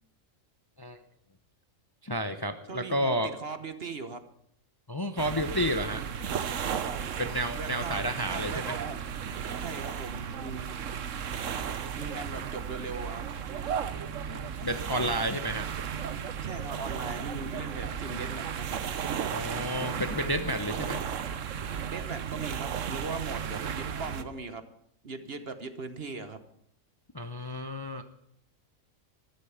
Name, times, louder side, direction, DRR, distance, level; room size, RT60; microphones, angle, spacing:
voice 1, 2.0-3.3 4.9-6.0 7.2-8.7 14.3-15.6 19.3-21.0 27.1-28.0, equal, 20° left, 8 dB, 0.7 m, -31 dB
voice 2, 2.7-4.2 6.8-7.0 7.5-8.0 8.3-9.0 9.6-11.1 11.9-13.3 16.4-18.9 21.9-24.6 25.0-26.4, right 4 dB, 50° right, 10 dB, 1.3 m, -39 dB
sound 1, 5.2-24.2, right 7 dB, 70° right, 1.3 m, -34 dB
14.0 x 12.0 x 7.0 m, 0.69 s
omnidirectional pair, 1.4 m